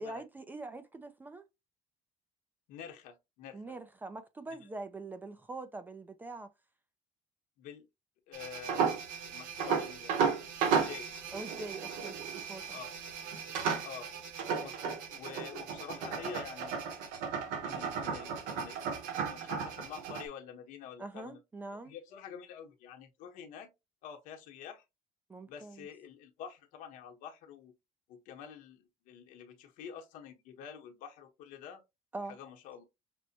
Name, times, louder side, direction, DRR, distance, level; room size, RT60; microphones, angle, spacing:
voice 1, 0.0-1.5 3.5-6.5 11.3-12.8 21.0-21.9 25.3-25.9 32.1-32.4, right 2 dB, 15° right, 0.3 m, -43 dB
voice 2, 2.7-3.8 4.6-4.7 7.6-7.9 8.3-9.0 9.2-10.3 10.6-11.1 12.7-12.9 13.5-13.6 13.8-14.1 14.6-16.9 17.6-18.8 19.1-21.4 21.8-23.7 24.0-24.8 25.5-27.7 28.1-31.8 32.3-32.8, left 8 dB, 70° left, 1.0 m, -48 dB
sound 1, 8.3-20.2, right 6 dB, 90° right, 1.0 m, -34 dB
6.0 x 2.1 x 2.7 m
cardioid pair, 160°, 14 cm